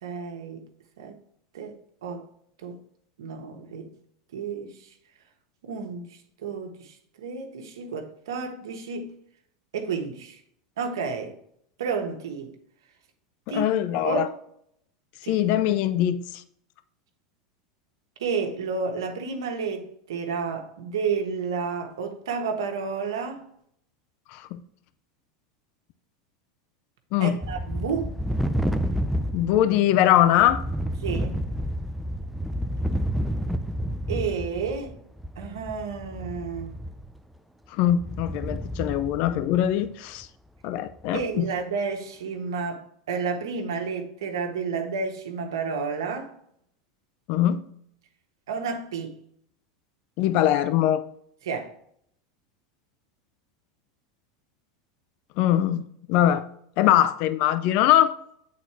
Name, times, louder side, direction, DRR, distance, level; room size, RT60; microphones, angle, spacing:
voice 1, 0.0-0.6 1.0-1.2 1.5-2.3 2.6-2.8 3.2-3.9 4.3-4.9 5.6-9.1 9.7-10.4 10.8-11.4 11.8-12.5 13.5-13.6 14.0-14.3 15.2-15.4 18.2-23.5 27.2-28.1 31.0-31.4 34.1-34.9 35.4-36.7 41.1-46.3 48.5-49.2 51.4-51.7, right 5 dB, 85° right, 1.4 m, -31 dB
voice 2, 13.5-14.3 15.2-16.4 24.3-24.6 27.1-27.4 29.3-30.6 37.7-40.3 40.6-41.5 47.3-47.6 50.2-51.0 55.4-55.8 56.1-56.5 56.8-58.2, left 12 dB, 55° left, 0.5 m, -22 dB
sound 1, 27.4-29.8 30.2-37.2 37.8-39.9 40.2-40.3 40.9-41.2, equal, 5° right, 0.5 m, -30 dB
8.3 x 4.2 x 4.4 m
supercardioid pair, 115°, 2 cm